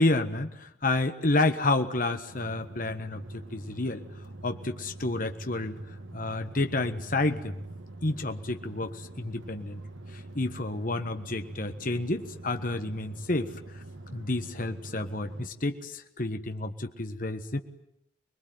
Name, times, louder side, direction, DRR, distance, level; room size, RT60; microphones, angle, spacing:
voice 1, 0.0-4.0 4.4-5.8 6.1-7.6 8.0-9.8 10.1-13.5 14.1-17.6, left 2 dB, 45° left, 7 dB, 1.5 m, -30 dB
sound 1, 2.3-15.5, right 2 dB, 85° right, 2.0 m, -45 dB
26.0 x 21.0 x 9.4 m, 0.80 s
head